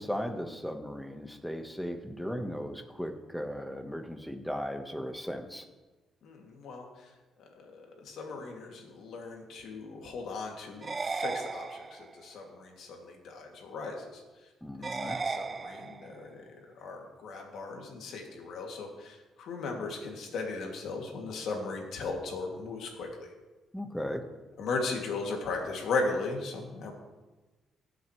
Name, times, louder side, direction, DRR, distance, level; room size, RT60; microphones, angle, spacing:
voice 1, 0.0-5.7 14.6-15.2 23.7-24.3, equal, 5° left, 5 dB, 1.4 m, -37 dB
voice 2, 6.2-7.1 7.4-14.2 14.8-16.4 16.7-23.3 24.6-26.9, left 3 dB, 75° left, 1 dB, 2.6 m, -37 dB
sound 1, 10.8-12.2 14.8-16.2, right 4 dB, 30° right, 0.3 m, -36 dB
21.0 x 7.9 x 3.3 m, 1.2 s
cardioid pair, 90°, 0 cm